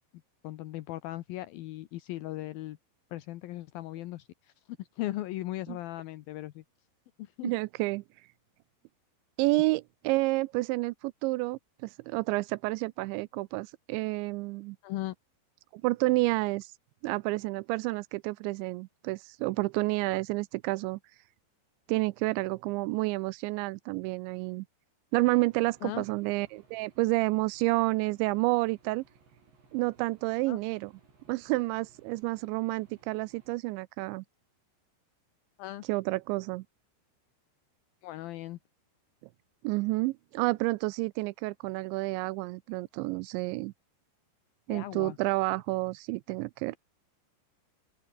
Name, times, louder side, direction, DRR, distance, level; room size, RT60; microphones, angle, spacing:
voice 1, 0.4-2.8 3.1-4.3 4.8-6.6 7.4-7.5 14.8-15.1 25.8-26.0 30.5-30.6 35.6-35.8 38.0-38.6 44.7-45.2, left 16 dB, 75° left, 2.2 m, -37 dB
voice 2, 7.4-8.0 9.4-14.8 15.7-16.7 17.0-21.0 21.9-24.7 25.1-29.0 29.7-30.9 31.3-34.2 35.9-36.6 39.6-43.7 44.7-46.8, right 22 dB, 85° right, 2.8 m, -30 dB
Aircraft / Engine, 25.1-33.6, right 4 dB, 70° right, 10.0 m, -62 dB
open air
omnidirectional pair, 5.3 m